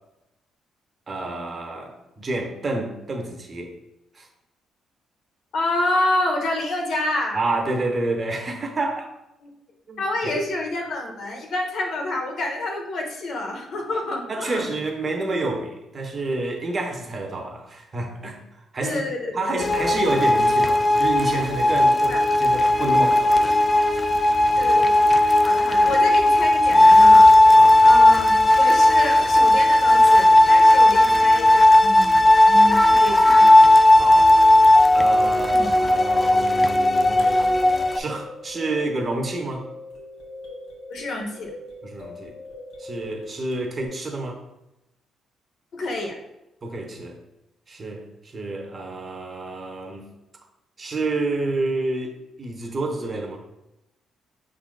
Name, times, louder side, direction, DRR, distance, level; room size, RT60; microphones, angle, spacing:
voice 1, 1.1-3.7 4.1-4.3 7.3-9.1 9.9-10.4 14.3-18.4 18.7-24.1 24.4-24.7 27.5-27.8 32.8-32.9 33.9-34.4 34.9-37.5 37.9-39.6 41.8-42.3 42.8-44.4 46.6-47.2 47.7-50.0 50.8-53.4, right 2 dB, 35° right, 3 dB, 0.9 m, -29 dB
voice 2, 5.5-7.4 9.4-9.5 10.0-14.6 18.8-19.8 22.1-22.2 24.6-27.3 27.8-33.5 35.5-35.7 40.9-41.5 45.7-46.2, left 2 dB, 70° left, 1 dB, 0.9 m, -28 dB
sound 1, 19.6-38.0, left 1 dB, 25° left, 0.3 m, -15 dB
sound 2, 34.6-43.9, left 2 dB, 85° left, 1.3 m, -41 dB
5.5 x 3.8 x 2.3 m, 0.91 s
cardioid pair, 90°, 0 cm